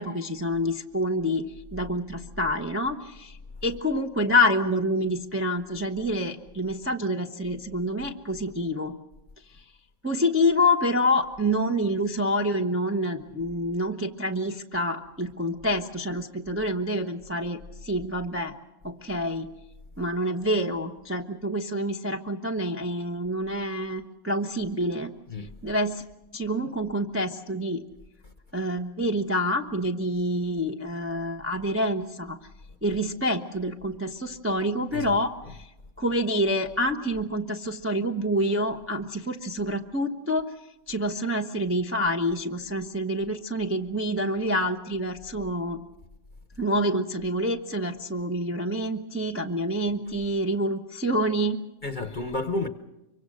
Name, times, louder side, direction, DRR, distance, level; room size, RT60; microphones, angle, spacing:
voice 1, 0.0-1.5 1.7-3.4 3.6-8.9 10.0-18.6 18.8-19.5 20.0-25.1 25.4-26.0 26.3-27.8 28.5-32.4 32.8-35.7 36.0-40.5 40.9-45.8 46.6-51.6, equal, 10° right, 0.6 m, -27 dB
voice 2, 34.9-35.6 51.8-52.7, left 2 dB, 30° left, 1.0 m, -32 dB
24.5 x 24.0 x 6.4 m
omnidirectional pair, 2.0 m